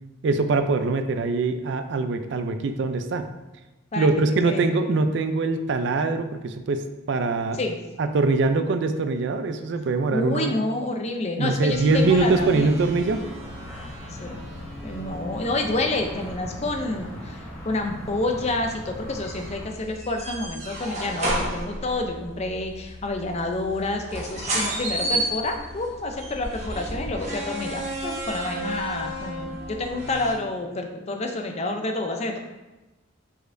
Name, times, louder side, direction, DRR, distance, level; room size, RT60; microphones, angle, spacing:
voice 1, 0.2-3.3 4.0-7.6 8.0-10.5 11.4-13.2, right 3 dB, 60° right, 8 dB, 0.3 m, -23 dB
voice 2, 10.1-12.7 14.2-14.4 14.8-32.4, left 2 dB, 30° left, 4 dB, 0.4 m, -28 dB
sound 1, 11.6-30.3, right 1 dB, 35° right, 0.9 m, -34 dB
sound 2, 11.9-19.7, equal, 5° left, 0.8 m, -40 dB
5.0 x 4.2 x 2.6 m, 1.1 s
head